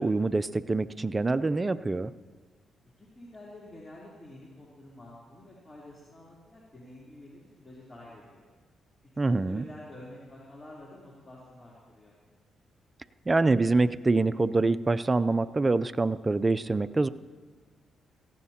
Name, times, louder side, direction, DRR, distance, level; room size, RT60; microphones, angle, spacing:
voice 1, 0.0-2.1 9.2-9.6 13.3-17.1, right 3 dB, 25° right, 16 dB, 0.4 m, -25 dB
voice 2, 3.0-8.5 9.1-12.2, left 1 dB, 25° left, -5 dB, 3.3 m, -48 dB
18.0 x 16.0 x 2.9 m, 1.5 s
cardioid pair, 65°, 0 cm